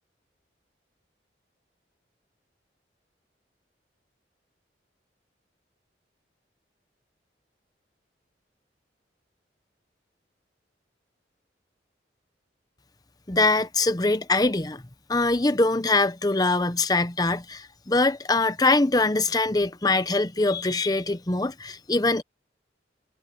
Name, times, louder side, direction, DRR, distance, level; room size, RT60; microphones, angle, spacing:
voice 1, 13.3-14.8 15.1-22.2, left 2 dB, 20° left, 0.8 m, -23 dB
head